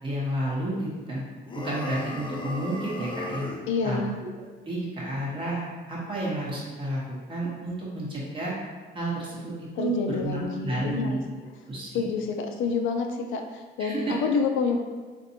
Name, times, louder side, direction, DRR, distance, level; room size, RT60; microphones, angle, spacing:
voice 1, 0.0-1.2 1.5-3.5 3.8-4.0 4.7-5.6 5.9-7.0 7.3-8.5 8.9-11.2 11.7-12.1 13.8-14.1, right 1 dB, 25° right, -6 dB, 1.1 m, -31 dB
sound 1, 1.5-3.7, left 2 dB, 25° left, 0.4 m, -36 dB
voice 2, 3.7-4.2 9.8-11.2 11.9-14.8, left 5 dB, 80° left, 4 dB, 0.5 m, -28 dB
3.9 x 2.6 x 2.8 m, 1.4 s
cardioid pair, 90°, 20 cm